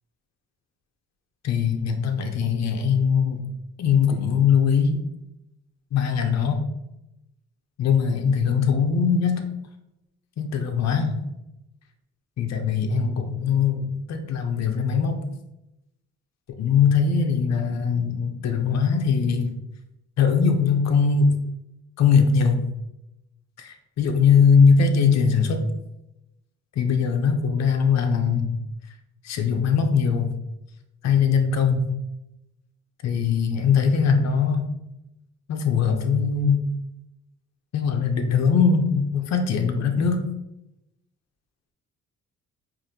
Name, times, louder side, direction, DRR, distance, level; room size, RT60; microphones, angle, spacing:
voice 1, 1.4-3.4 3.8-5.0 5.9-6.6 7.8-9.5 10.4-11.2 12.4-15.2 16.6-19.6 20.2-21.4 22.0-22.6 23.6-25.6 26.8-28.5 29.2-30.3 31.0-31.9 33.0-34.7 35.5-36.6 37.7-40.2, left 6 dB, 60° left, 5 dB, 0.7 m, -21 dB
4.8 x 2.5 x 2.8 m, 0.89 s
cardioid pair, 90°, 30 cm